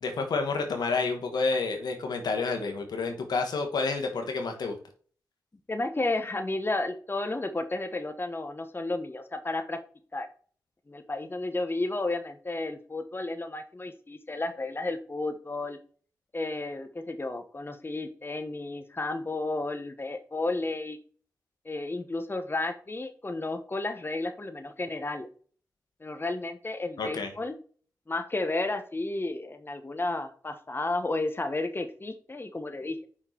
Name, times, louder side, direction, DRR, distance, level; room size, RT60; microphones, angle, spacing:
voice 1, 0.0-4.8 27.0-27.3, left 4 dB, 85° left, 4 dB, 1.3 m, -29 dB
voice 2, 5.7-9.8 10.1-10.3 10.9-15.8 16.3-21.0 21.6-25.3 26.0-27.5 28.1-33.0, left 2 dB, 35° left, 7 dB, 1.0 m, -32 dB
5.6 x 4.4 x 4.4 m, 0.43 s
cardioid pair, 40°, 7 cm